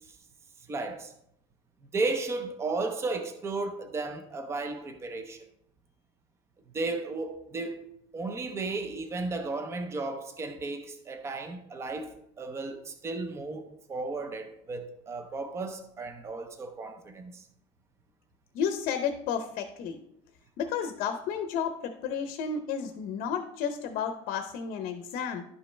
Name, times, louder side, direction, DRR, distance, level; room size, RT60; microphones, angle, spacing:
voice 1, 0.7-1.1 1.9-5.4 6.7-17.4, right 3 dB, 15° right, 0.6 m, -34 dB
voice 2, 18.5-20.0 20.6-25.4, left 7 dB, 50° left, 0.7 m, -32 dB
11.5 x 5.3 x 3.3 m
cardioid pair, 175°, 18 cm